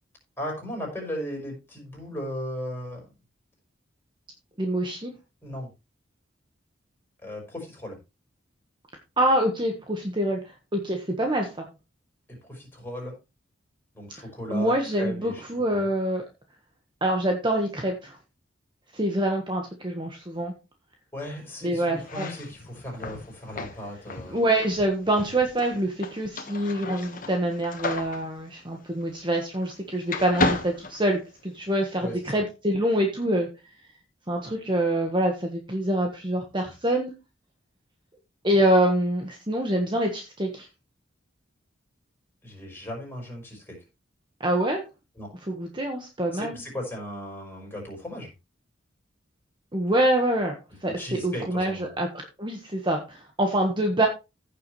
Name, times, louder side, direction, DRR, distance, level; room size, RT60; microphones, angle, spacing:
voice 1, 0.4-3.0 5.4-5.7 7.2-8.0 12.3-13.1 13.9-15.4 15.7-15.9 21.1-24.4 32.0-32.4 42.4-43.8 45.2-45.3 46.3-48.3 50.9-51.9, equal, 10° left, -1 dB, 5.7 m, -36 dB
voice 2, 4.6-5.1 9.2-10.4 10.7-11.6 14.5-16.2 17.0-18.2 18.9-20.5 21.6-22.3 24.3-33.5 34.3-37.1 38.4-40.7 44.4-44.8 45.5-46.6 49.7-50.5 50.8-52.1 52.4-54.1, right 1 dB, 25° right, 2 dB, 1.4 m, -25 dB
sound 1, 22.0-29.8 30.1-31.7, left 3 dB, 45° left, 1.4 m, -34 dB
15.5 x 7.0 x 3.2 m, 0.27 s
head